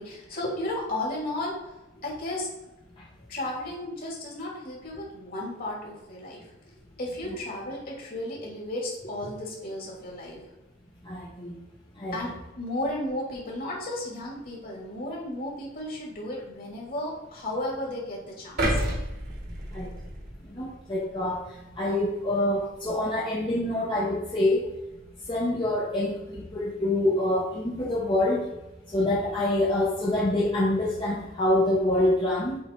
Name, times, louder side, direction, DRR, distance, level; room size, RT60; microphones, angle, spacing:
voice 1, 0.0-1.6 1.9-2.5 3.3-10.4 12.1-18.8, left 1 dB, 50° left, -3 dB, 2.4 m, -34 dB
voice 2, 11.1-11.5 12.0-12.2 19.7-19.9 20.5-21.4 21.8-24.6 25.3-28.5 28.9-32.6, left 1 dB, 25° left, -5 dB, 0.9 m, -26 dB
sound 1, 18.6-20.7 21.2-21.4, right 1 dB, 55° right, 1.5 m, -30 dB
7.3 x 3.7 x 4.5 m, 0.99 s
head